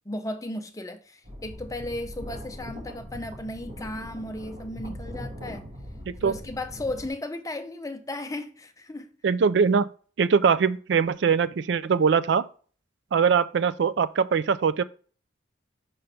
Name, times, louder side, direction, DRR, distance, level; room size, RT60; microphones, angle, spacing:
voice 1, 0.1-5.7 6.2-9.1, left 1 dB, 15° left, 0.6 m, -35 dB
sound 1, 1.2-7.1, equal, 30° right, 1.8 m, -40 dB
voice 2, 9.2-9.9 10.2-12.5 13.1-14.8, right 6 dB, 65° right, 0.4 m, -22 dB
5.8 x 5.3 x 3.3 m
head